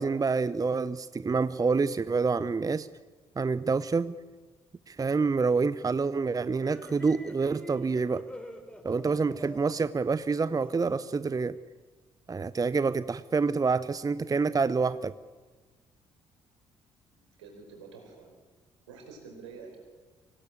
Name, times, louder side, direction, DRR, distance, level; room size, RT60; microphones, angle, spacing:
voice 1, 0.0-2.9 3.4-4.2 4.9-8.3 8.8-11.6 12.3-15.1, right 4 dB, 25° right, 0.7 m, -27 dB
sound 1, 6.6-11.2, equal, 5° left, 4.6 m, -47 dB
voice 2, 17.4-18.3 18.9-19.8, right 5 dB, 80° right, 4.7 m, -47 dB
25.0 x 17.5 x 8.7 m
figure-of-eight pair, 45°, 14 cm